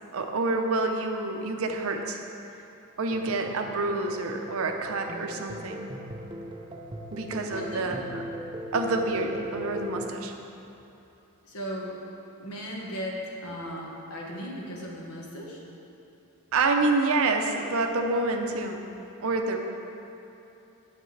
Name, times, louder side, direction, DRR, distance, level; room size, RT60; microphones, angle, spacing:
voice 1, 0.1-2.2 3.0-5.9 7.1-8.2 8.7-10.3 16.5-18.8 19.2-19.6, right 3 dB, 70° right, 4 dB, 0.6 m, -27 dB
sound 1, 3.1-10.1, right 1 dB, 20° right, 0.5 m, -39 dB
voice 2, 7.5-7.9 11.4-12.0 12.4-15.6, equal, 75° left, -2 dB, 1.3 m, -37 dB
8.0 x 7.4 x 3.2 m, 2.9 s
head